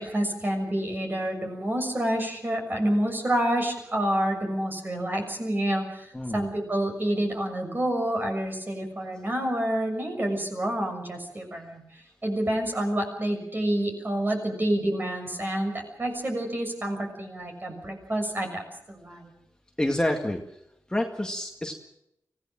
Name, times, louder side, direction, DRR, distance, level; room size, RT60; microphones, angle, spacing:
voice 1, 0.0-11.8 12.2-19.3, right 1 dB, 35° right, 3 dB, 6.5 m, -28 dB
voice 2, 6.1-6.5 19.8-20.4 20.9-21.7, left 1 dB, 10° left, 2 dB, 2.0 m, -27 dB
25.0 x 17.0 x 7.6 m, 0.81 s
wide cardioid pair, 115°, 6 cm